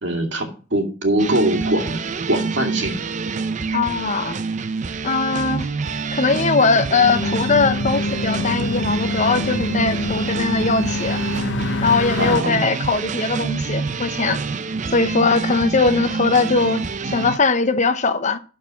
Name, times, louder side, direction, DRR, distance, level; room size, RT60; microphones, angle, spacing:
voice 1, 0.0-3.0 12.2-12.6, right 1 dB, 70° right, 2.4 m, -22 dB
sound 1, 1.2-17.4, right 4 dB, 40° right, 0.5 m, -27 dB
voice 2, 3.7-4.4 5.0-5.7 6.1-11.2 11.8-14.4 14.9-18.4, left 4 dB, 40° left, 0.8 m, -20 dB
sound 2, 7.0-12.4, left 2 dB, 70° left, 0.7 m, -25 dB
12.5 x 4.9 x 5.7 m
head